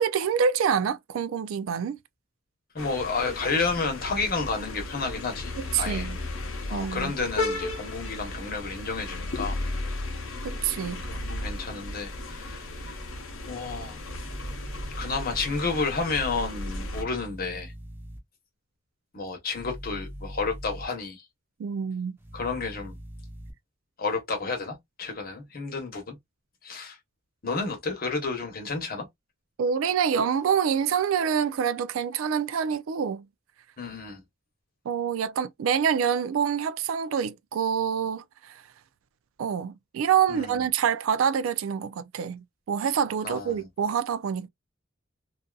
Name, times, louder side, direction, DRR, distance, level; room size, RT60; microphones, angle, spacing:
voice 1, 0.0-2.0 5.6-6.2 6.7-7.1 10.4-11.0 21.6-22.2 29.6-33.2 34.9-38.6 39.4-44.5, right 7 dB, 90° right, 0.3 m, -26 dB
voice 2, 2.7-5.5 5.8-6.1 6.7-9.6 11.0-13.0 13.5-14.0 15.0-17.7 19.1-21.2 22.3-23.0 24.0-26.2 26.6-27.0 27.4-29.1 33.8-34.2 40.3-40.5 43.2-43.6, left 4 dB, 45° left, 0.9 m, -31 dB
sound 1, 2.8-17.0, left 2 dB, 80° left, 0.8 m, -35 dB
sound 2, 14.2-15.5 16.9-18.2 19.5-20.9 22.2-23.5, equal, 10° right, 0.6 m, -41 dB
2.6 x 2.4 x 2.2 m
head